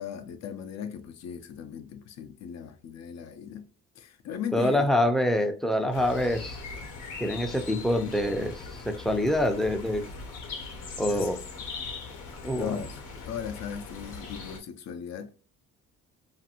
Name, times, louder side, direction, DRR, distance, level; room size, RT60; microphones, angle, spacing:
voice 1, 0.0-4.9 11.1-11.4 12.6-13.0 13.3-15.3, left 8 dB, 60° left, 0.4 m, -38 dB
voice 2, 4.5-6.6 7.2-10.0 11.0-11.4 12.4-12.8, left 1 dB, ahead, 0.4 m, -26 dB
sound 1, 5.9-14.6, left 4 dB, 90° left, 0.7 m, -40 dB
2.5 x 2.5 x 2.7 m
cardioid pair, 90°, 30 cm